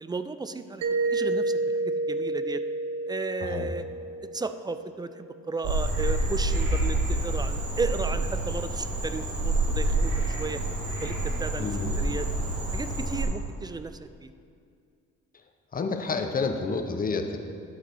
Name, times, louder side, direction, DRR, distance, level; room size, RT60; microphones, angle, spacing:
voice 1, 0.0-2.6 3.1-3.9 4.3-10.1 10.4-10.6 11.0-11.7 11.9-12.3 12.7-14.3, right 3 dB, 15° right, 11 dB, 0.3 m, -34 dB
Mallet percussion, 0.8-5.4, right 2 dB, 75° right, 0.7 m, -30 dB
voice 2, 3.4-3.7 11.6-12.0 15.7-17.4, left 4 dB, 30° left, 5 dB, 0.8 m, -29 dB
Frog, 5.6-13.2, right 2 dB, 50° right, 2.1 m, -28 dB
11.5 x 4.0 x 6.1 m, 2.4 s
cardioid pair, 90°, 30 cm